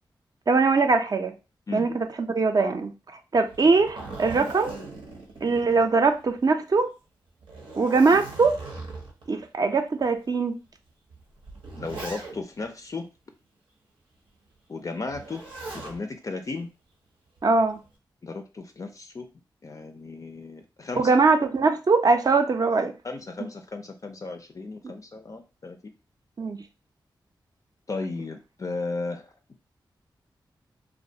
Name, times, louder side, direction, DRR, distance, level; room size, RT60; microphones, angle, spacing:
voice 1, 0.5-1.3 1.7-2.9 3.3-4.7 5.4-6.9 7.8-8.6 9.3-10.6 17.4-17.8 21.0-22.9 26.4-26.6, right 4 dB, 50° right, 6 dB, 0.5 m, -21 dB
Zipper (clothing), 3.5-6.4 6.8-6.9 7.4-9.3 10.0-10.1 11.1-12.6 15.1-16.0 17.4-17.8, right 3 dB, 80° right, 0.7 m, -39 dB
voice 2, 11.7-13.1 14.7-15.4 15.7-16.7 18.2-19.3 19.6-21.1 23.0-25.9 27.9-29.2, left 3 dB, 40° left, 6 dB, 0.4 m, -35 dB
2.4 x 2.2 x 2.7 m, 0.30 s
cardioid pair, 45°, 9 cm